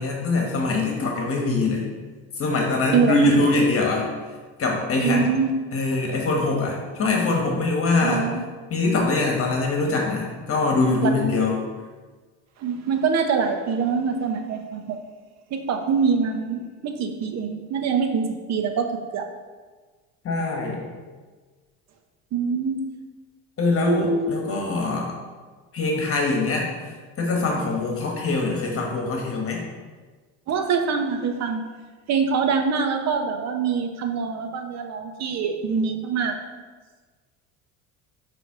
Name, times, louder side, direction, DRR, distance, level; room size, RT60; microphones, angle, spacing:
voice 1, 0.0-1.8 2.4-4.1 4.6-5.3 5.7-8.3 8.7-11.6 20.2-20.9 23.6-25.1 25.7-26.7 27.2-29.6, left 3 dB, 40° left, 1 dB, 1.3 m, -23 dB
voice 2, 2.9-3.3 5.0-5.5 8.0-8.4 11.0-11.1 12.6-15.0 15.5-19.2 22.3-22.8 23.8-24.4 30.5-31.6 32.1-36.4, right 5 dB, 50° right, 6 dB, 0.9 m, -24 dB
6.1 x 3.4 x 4.8 m, 1.4 s
supercardioid pair, 85°, 34 cm